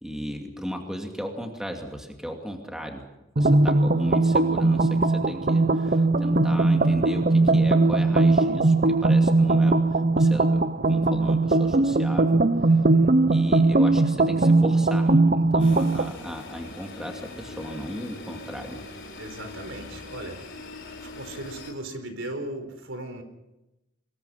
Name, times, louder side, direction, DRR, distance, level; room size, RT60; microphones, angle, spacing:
voice 1, 0.0-3.1 3.4-12.5 13.3-18.8, equal, 5° right, 2 dB, 2.5 m, -36 dB
sound 1, 3.4-16.1, right 2 dB, 40° right, 0.8 m, -20 dB
voice 2, 12.7-13.2 19.2-20.4 21.0-23.2, right 1 dB, 70° right, 7 dB, 4.3 m, -37 dB
sound 2, 15.6-21.7, left 3 dB, 60° left, 4.4 m, -42 dB
25.0 x 22.0 x 5.8 m, 0.95 s
head